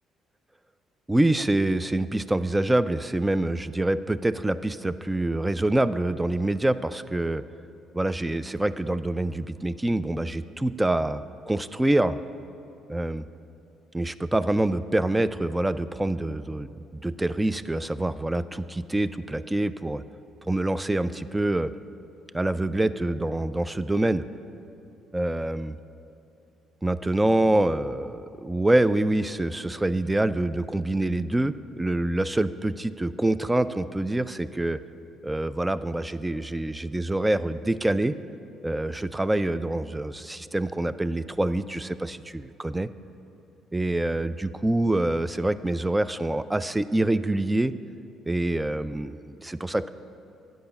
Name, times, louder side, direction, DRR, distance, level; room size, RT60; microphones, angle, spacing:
voice 1, 1.1-7.4 7.9-12.2 12.9-13.3 13.9-20.0 20.4-21.7 22.3-24.2 25.1-25.8 26.8-34.8 35.2-38.1 38.6-42.9 43.7-47.8 48.3-49.9, right 1 dB, 15° right, 15 dB, 0.3 m, -26 dB
8.6 x 5.1 x 6.9 m, 2.8 s
supercardioid pair, 70°, 0 cm